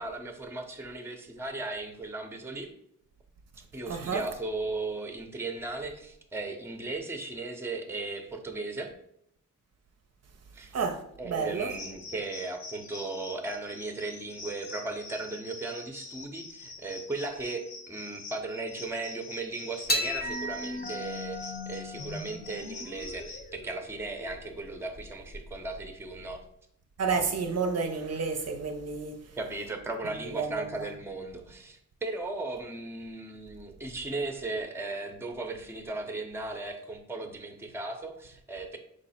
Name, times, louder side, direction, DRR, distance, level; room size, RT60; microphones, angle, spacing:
voice 1, 0.0-2.7 3.7-8.9 10.5-10.7 11.2-26.4 29.4-38.8, right 2 dB, 10° right, 0.5 m, -37 dB
voice 2, 3.9-4.2 10.7-11.7 27.0-29.3 30.3-30.8, right 5 dB, 50° right, 0.5 m, -31 dB
sound 1, 11.7-23.5, left 3 dB, 85° left, 0.8 m, -45 dB
sound 2, 19.9-26.4, left 1 dB, 30° left, 0.7 m, -36 dB
4.8 x 2.0 x 4.0 m
cardioid pair, 80°, 33 cm